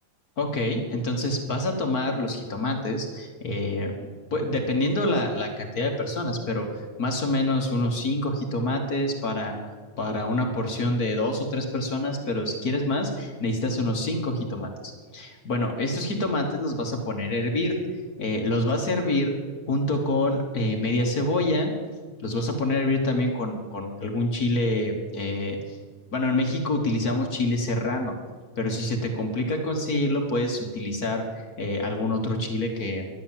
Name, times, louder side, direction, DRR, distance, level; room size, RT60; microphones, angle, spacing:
voice 1, 0.4-3.9 4.3-14.7 15.1-17.8 18.2-19.3 19.7-21.7 22.2-25.6 26.1-28.1 28.5-33.1, left 1 dB, 45° left, 3 dB, 1.3 m, -26 dB
11.5 x 10.5 x 7.3 m, 1.5 s
omnidirectional pair, 3.4 m